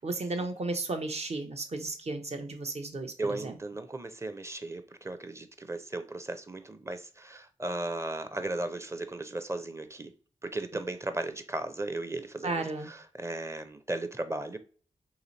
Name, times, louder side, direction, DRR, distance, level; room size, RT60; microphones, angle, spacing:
voice 1, 0.0-3.6 12.4-12.9, right 3 dB, 55° right, 0.8 m, -34 dB
voice 2, 3.2-10.1 10.4-14.6, right 2 dB, 20° right, 0.6 m, -36 dB
3.1 x 2.9 x 4.0 m
cardioid pair, 55°, 13 cm